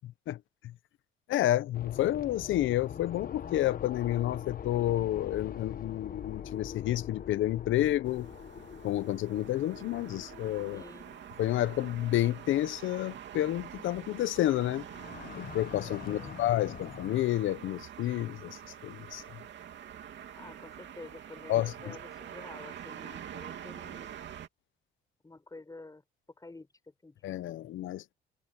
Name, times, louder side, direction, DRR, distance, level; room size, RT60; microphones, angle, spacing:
voice 1, 0.3-0.7 1.3-8.3 8.8-10.8 11.4-14.9 15.3-19.2 21.5-22.0 27.2-28.0, left 14 dB, 80° left, 0.8 m, -30 dB
sound 1, 1.7-11.6 14.8-17.2, left 8 dB, 45° left, 1.0 m, -44 dB
sound 2, 8.0-24.5, right 9 dB, 65° right, 2.6 m, -46 dB
voice 2, 10.7-11.2 16.0-16.8 20.3-24.1 25.2-26.0 26.4-27.2, left 2 dB, 20° left, 6.4 m, -50 dB
cardioid pair, 90°, 20 cm